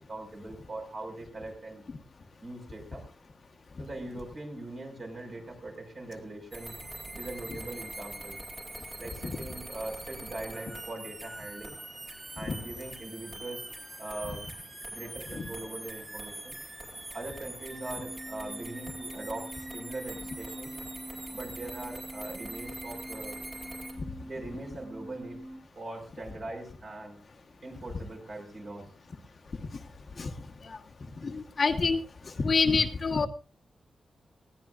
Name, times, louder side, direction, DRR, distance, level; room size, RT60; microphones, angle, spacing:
voice 1, 0.1-1.8 2.4-3.1 3.8-6.8 7.1-8.4 9.0-11.7 12.3-13.7 14.0-14.4 14.9-16.6 17.1-20.7 21.3-23.4 24.2-25.4 25.8-27.2 27.6-28.9, right 2 dB, 40° right, 2 dB, 5.6 m, -41 dB
sound 1, 6.5-23.9, right 1 dB, 25° right, 3.8 m, -43 dB
sound 2, 17.7-25.6, right 1 dB, 60° right, 5.8 m, -44 dB
voice 2, 31.2-32.0 32.4-33.3, left 4 dB, 40° left, 3 dB, 1.3 m, -26 dB
20.5 x 16.5 x 2.5 m, 0.35 s
wide cardioid pair, 145°, 0 cm